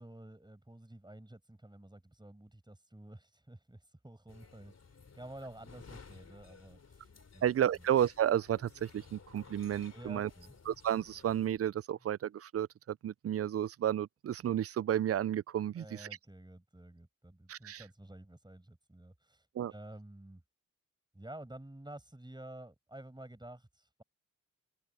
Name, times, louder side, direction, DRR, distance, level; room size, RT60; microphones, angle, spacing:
voice 1, 0.0-4.7 5.1-7.1 7.3-7.4 7.7-7.8 9.9-10.5 15.8-19.5 19.7-20.4 21.1-24.0, right 1 dB, 15° right, 7.2 m, -51 dB
sound 1, 4.3-11.5, left 5 dB, 50° left, 2.8 m, -56 dB
voice 2, 7.4-10.3 10.7-16.1 17.5-17.8 19.5-19.7, right 10 dB, 45° right, 0.4 m, -32 dB
cardioid pair, 60°, 33 cm